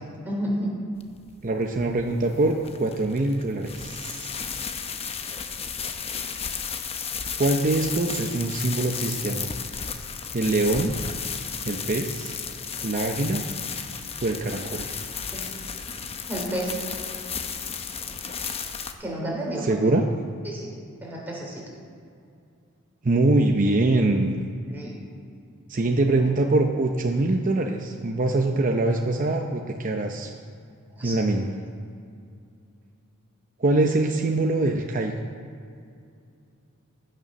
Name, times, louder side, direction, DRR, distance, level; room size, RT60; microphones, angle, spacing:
voice 1, 0.3-0.7 15.3-15.5 16.3-16.8 19.0-19.8 20.4-20.7 21.0-21.6 24.7-24.9 31.0-31.1, right 1 dB, 10° right, -4 dB, 3.4 m, -30 dB
sound 1, 1.0-18.9, left 6 dB, 30° left, 0.7 m, -34 dB
voice 2, 1.4-4.3 7.4-9.5 10.3-10.9 11.6-12.4 12.8-13.4 14.2-15.0 19.6-20.0 23.0-24.5 25.7-30.3 31.0-31.6 33.6-35.1, right 2 dB, 40° right, 2 dB, 0.7 m, -23 dB
15.0 x 6.8 x 6.3 m, 2.4 s
head